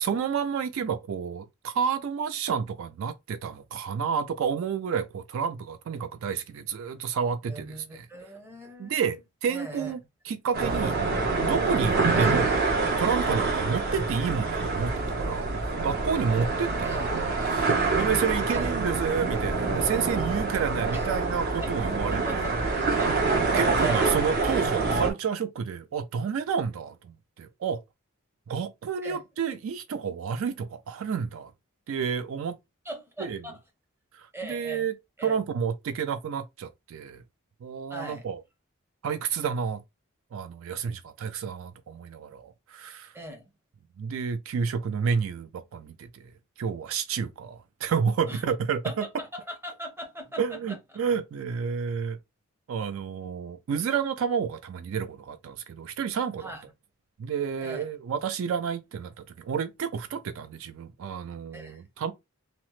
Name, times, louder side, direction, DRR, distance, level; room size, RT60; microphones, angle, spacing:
voice 1, 0.0-8.0 8.8-10.0 10.3-11.0 11.4-12.5 13.0-14.9 15.2-15.5 15.8-17.1 17.5-17.7 17.9-22.4 23.5-27.8 28.5-31.5 31.9-32.6 33.2-33.4 34.2-34.9 35.2-37.2 37.6-38.4 39.0-39.8 40.3-43.1 44.0-46.1 46.6-48.8 50.4-52.2 52.7-56.5 57.2-62.1, right 6 dB, 70° right, 0.3 m, -30 dB
voice 2, 7.4-9.1 9.5-10.0 12.1-12.4 16.8-17.2 18.5-18.7 20.9-21.1 21.5-21.7 22.1-22.5 22.9-23.2 23.8-24.7 29.0-29.2 32.8-33.6 34.3-34.9 35.2-35.4 37.9-38.3 43.1-43.5 48.3-48.4 48.8-50.8 56.4-56.6 57.6-57.9 61.5-61.8, right 1 dB, 10° right, 0.7 m, -40 dB
sound 1, 10.5-25.1, right 3 dB, 50° right, 0.7 m, -26 dB
2.9 x 2.0 x 3.0 m
head